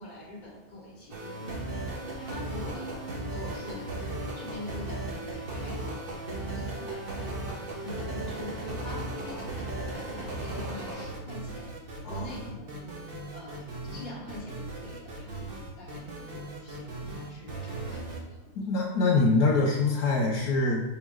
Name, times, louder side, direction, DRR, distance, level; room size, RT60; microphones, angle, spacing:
voice 1, 0.0-13.0 13.3-18.3, left 2 dB, 35° left, -6 dB, 1.6 m, -45 dB
sound 1, 1.1-18.2, right 2 dB, 50° right, 0.8 m, -36 dB
voice 2, 18.5-20.8, left 3 dB, 85° left, -3 dB, 1.4 m, -24 dB
6.4 x 3.4 x 2.4 m, 0.98 s
omnidirectional pair, 1.6 m